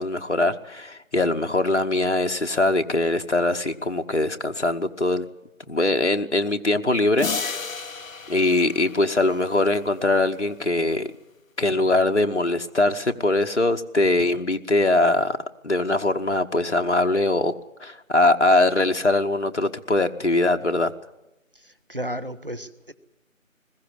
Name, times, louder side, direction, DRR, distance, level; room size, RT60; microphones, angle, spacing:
voice 1, 0.0-5.3 5.7-7.6 8.3-11.1 11.6-15.4 15.6-17.5 17.8-20.9, left 2 dB, 55° left, 6 dB, 1.1 m, -22 dB
sound 1, 7.2-9.7, left 5 dB, 75° left, 0.7 m, -32 dB
voice 2, 21.5-22.9, equal, 40° right, 13 dB, 1.1 m, -34 dB
21.0 x 15.0 x 10.0 m, 0.94 s
figure-of-eight pair, 180°, 41 cm